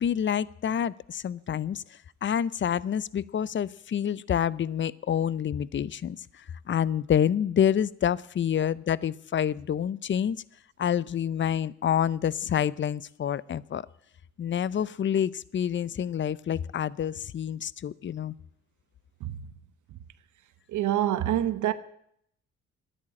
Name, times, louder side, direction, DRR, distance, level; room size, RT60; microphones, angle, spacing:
voice 1, 0.0-1.8 2.2-10.4 10.8-13.9 14.4-18.3, left 9 dB, 40° left, 0.6 m, -28 dB
voice 2, 19.2-19.5 19.9-20.0 20.7-21.7, right 12 dB, 75° right, 1.1 m, -27 dB
13.0 x 10.5 x 9.9 m
cardioid pair, 90°, 30 cm